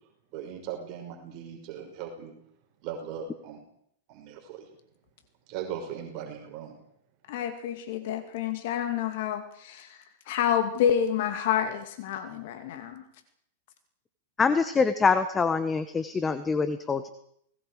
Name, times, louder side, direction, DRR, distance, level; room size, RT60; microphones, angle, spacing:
voice 1, 0.3-2.3 2.8-3.6 4.1-4.7 5.5-6.7, right 8 dB, 45° right, 2 dB, 5.7 m, -38 dB
voice 2, 7.3-10.0 10.3-13.0, left 9 dB, 60° left, 7 dB, 2.4 m, -28 dB
voice 3, 14.4-17.1, left 5 dB, 15° left, 11 dB, 1.2 m, -25 dB
29.5 x 19.5 x 4.9 m, 0.69 s
hypercardioid pair, 130°, 0 cm